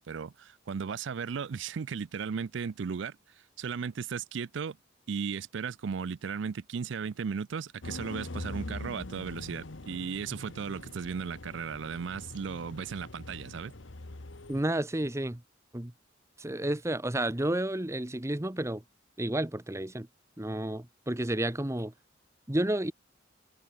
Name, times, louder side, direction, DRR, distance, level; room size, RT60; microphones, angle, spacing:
voice 1, 0.0-4.8 5.1-13.7, right 6 dB, 65° right, 0.4 m, -36 dB
sound 1, 7.8-14.6, left 2 dB, 70° left, 1.4 m, -43 dB
voice 2, 14.5-15.4 15.7-15.9 16.4-18.8 19.2-20.1 20.4-21.9 22.5-22.9, right 1 dB, 15° right, 1.0 m, -31 dB
head